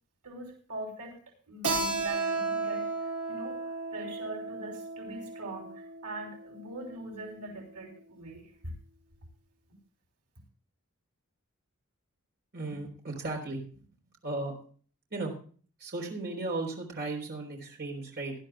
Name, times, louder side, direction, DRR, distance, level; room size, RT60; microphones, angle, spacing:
voice 1, 0.2-1.2 1.5-8.5, right 2 dB, 85° right, 1 dB, 3.1 m, -42 dB
Keyboard (musical), 1.6-6.9, right 3 dB, 70° right, 2.4 m, -34 dB
voice 2, 12.5-13.6 14.2-14.5 15.1-15.3 15.8-18.3, right 2 dB, 50° right, 1 dB, 3.7 m, -35 dB
18.5 x 11.5 x 2.2 m, 0.42 s
head